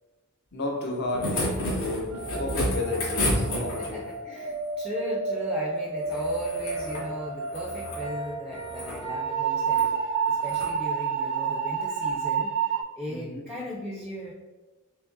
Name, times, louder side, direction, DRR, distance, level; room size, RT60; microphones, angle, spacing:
voice 1, 0.5-4.1 13.1-13.5, left 2 dB, 50° left, 0.6 m, -32 dB
sound 1, 0.8-4.1 6.0-7.1 7.4-8.0 8.6-9.0 9.7-9.9 10.4-10.7 12.1-12.2, left 1 dB, 75° left, 1.4 m, -31 dB
sound 2, 2.1-12.8, right 5 dB, 85° right, 0.5 m, -30 dB
voice 2, 3.8-12.6 13.0-14.3, equal, ahead, 0.4 m, -37 dB
Piano, 8.0-10.5, right 2 dB, 30° left, 1.1 m, -44 dB
4.7 x 3.2 x 2.6 m
head